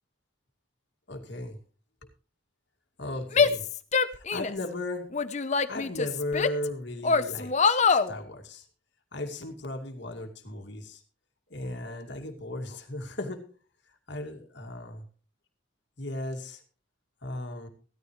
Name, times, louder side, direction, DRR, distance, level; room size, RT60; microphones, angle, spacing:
voice 1, 1.1-1.6 3.0-3.6 4.1-5.1 5.7-8.7 9.1-11.0 11.5-13.4 13.9-15.0 16.0-16.6 17.2-17.7, left 2 dB, 60° left, 4 dB, 2.4 m, -36 dB
Female speech woman speaking / Yell, 3.3-4.7 5.1-6.7 7.0-8.1, left 5 dB, 35° left, 0.8 m, -24 dB
16.0 x 13.5 x 3.2 m, 0.38 s
head